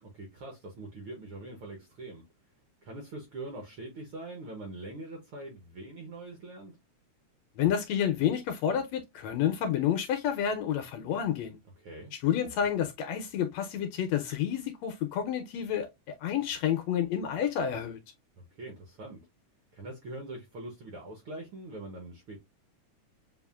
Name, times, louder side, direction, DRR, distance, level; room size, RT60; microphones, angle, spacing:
voice 1, 0.0-2.2 2.8-6.7 11.8-12.1 18.5-19.3 19.7-22.4, right 2 dB, 70° right, 1.3 m, -43 dB
voice 2, 7.6-11.6 12.2-15.9 16.2-18.0, left 9 dB, 80° left, 1.6 m, -29 dB
7.0 x 2.4 x 2.3 m
omnidirectional pair, 3.4 m